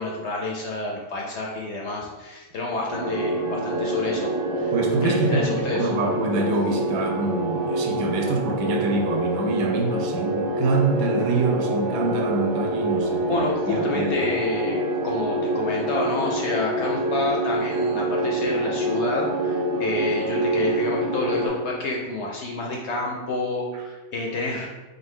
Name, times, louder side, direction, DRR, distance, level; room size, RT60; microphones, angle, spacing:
voice 1, 0.0-4.7 5.0-5.9 13.3-24.7, left 2 dB, 65° left, -1 dB, 0.7 m, -29 dB
sound 1, 2.9-21.5, right 1 dB, 45° right, 0.9 m, -26 dB
voice 2, 4.7-14.3, right 3 dB, 75° right, 3 dB, 1.0 m, -26 dB
3.9 x 2.6 x 3.6 m, 1.2 s
omnidirectional pair, 1.5 m